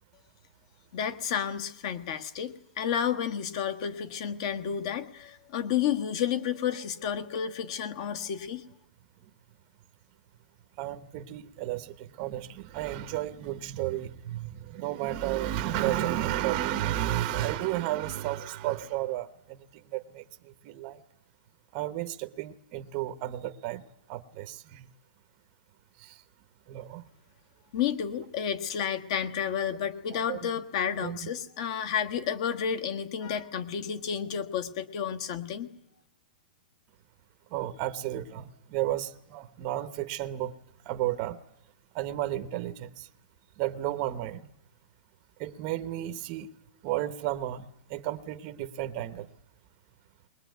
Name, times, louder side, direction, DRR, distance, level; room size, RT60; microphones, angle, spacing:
voice 1, 0.9-8.6 27.7-35.7, left 8 dB, 35° left, 11 dB, 1.4 m, -31 dB
voice 2, 10.8-21.0 21.7-23.8 24.1-24.9 26.0-26.2 26.7-27.0 30.1-30.5 31.0-31.3 37.5-40.5 40.8-41.4 41.9-43.1 43.6-44.5 45.4-46.5 46.8-49.3, right 13 dB, 25° right, 8 dB, 0.9 m, -33 dB
21.5 x 21.0 x 9.3 m, 0.74 s
hypercardioid pair, 175°, 5 cm